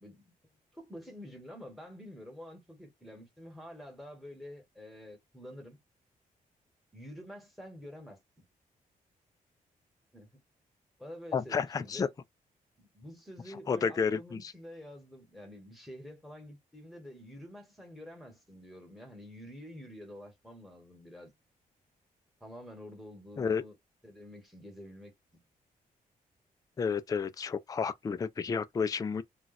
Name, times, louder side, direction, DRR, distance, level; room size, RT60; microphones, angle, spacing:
voice 1, 0.0-5.8 6.9-8.2 10.1-10.3 11.0-12.1 12.8-21.3 22.4-23.7 24.0-25.1, equal, ahead, 1.3 m, -48 dB
voice 2, 11.3-12.1 13.5-14.5 23.4-23.6 26.8-29.2, left 6 dB, 25° left, 0.3 m, -31 dB
2.4 x 2.3 x 3.9 m
cardioid pair, 105°, 15 cm